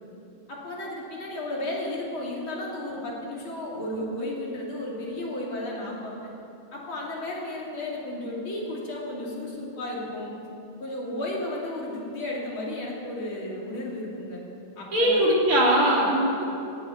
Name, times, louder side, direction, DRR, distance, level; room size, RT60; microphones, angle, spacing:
voice 1, 0.5-6.3 6.7-10.4 10.8-14.4 14.8-15.2, left 1 dB, 70° left, -4 dB, 3.7 m, -33 dB
voice 2, 14.9-16.4, equal, 85° right, -4 dB, 4.1 m, -21 dB
17.0 x 8.3 x 8.5 m, 2.8 s
omnidirectional pair, 2.3 m